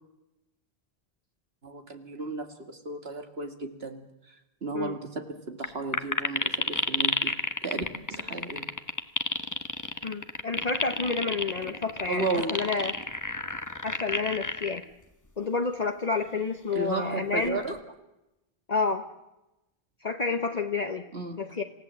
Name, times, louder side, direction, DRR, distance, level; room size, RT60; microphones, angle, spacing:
voice 1, 1.6-4.0 4.6-7.3 7.6-7.8 8.1-8.7 12.1-12.6 16.7-17.8 21.1-21.4, right 3 dB, 70° right, 6 dB, 2.4 m, -33 dB
sound 1, 5.6-5.7 5.9-14.8 15.4-15.5 17.4-17.8, left 2 dB, 20° left, 1.1 m, -29 dB
voice 2, 10.0-12.9 13.8-14.8 15.4-17.6 18.7-19.1 20.0-21.1 21.4-21.6, left 4 dB, 40° left, 5 dB, 1.2 m, -29 dB
27.0 x 16.0 x 7.7 m, 0.92 s
omnidirectional pair, 1.1 m